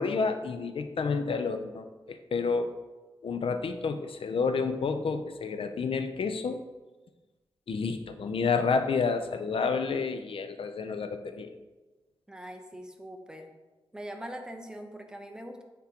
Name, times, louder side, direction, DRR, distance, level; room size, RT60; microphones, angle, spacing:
voice 1, 0.0-2.7 3.2-6.6 7.7-11.5, left 5 dB, 65° left, 8 dB, 0.5 m, -30 dB
voice 2, 12.3-13.5 13.9-15.6, equal, 5° right, 4 dB, 0.8 m, -42 dB
9.4 x 3.7 x 2.9 m, 1.2 s
cardioid pair, 70°, 10 cm